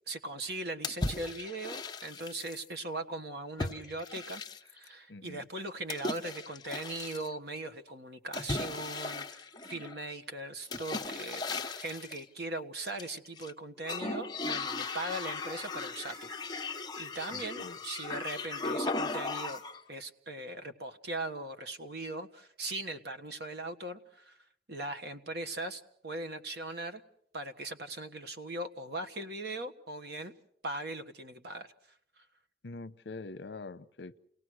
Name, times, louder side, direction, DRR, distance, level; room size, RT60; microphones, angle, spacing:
voice 1, 0.1-19.6 19.9-24.4 24.7-27.0 27.3-30.3 30.6-31.7 32.2-32.3, right 2 dB, 60° right, 9 dB, 1.5 m, -40 dB
sound 1, 0.8-2.6 3.6-4.9 5.9-7.3 8.3-10.0 10.7-12.2 12.9-13.5 13.8-19.8, left 3 dB, 20° left, 1.0 m, -37 dB
voice 2, 5.1-5.5 17.3-17.8 32.6-34.1, left 3 dB, 65° left, 14 dB, 0.8 m, -44 dB
29.5 x 18.0 x 6.4 m, 0.69 s
head